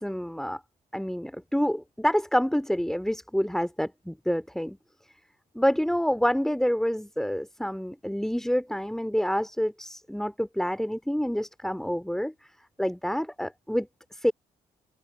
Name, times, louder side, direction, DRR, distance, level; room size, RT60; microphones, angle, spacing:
voice 1, 0.0-0.6 0.9-4.8 5.5-12.3 12.8-13.9 14.1-14.3, equal, ahead, 2.4 m, -27 dB
figure-of-eight pair, 40°, 20 cm